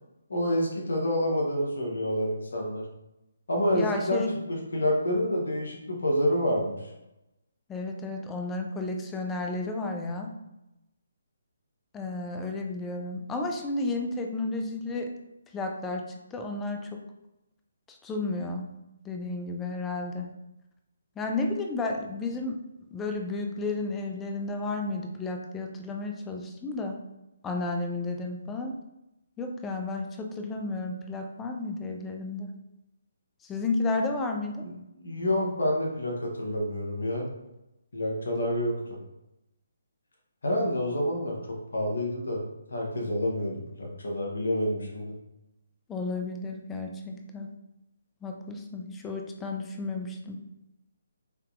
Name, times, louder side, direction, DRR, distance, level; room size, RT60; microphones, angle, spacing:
voice 1, 0.3-2.8 3.5-6.8 35.0-37.3 37.9-39.0 40.4-42.4 42.7-45.1, left 1 dB, 70° left, -1 dB, 0.9 m, -28 dB
voice 2, 3.7-4.3 7.7-10.3 11.9-15.1 15.5-16.0 16.3-17.0 17.9-18.7 19.1-20.3 21.2-22.6 22.9-27.0 27.4-28.8 29.4-32.5 33.4-34.6 45.9-47.5 48.2-50.4, left 3 dB, 10° left, 3 dB, 0.4 m, -32 dB
3.5 x 2.7 x 2.5 m, 0.92 s
figure-of-eight pair, 145°, 0 cm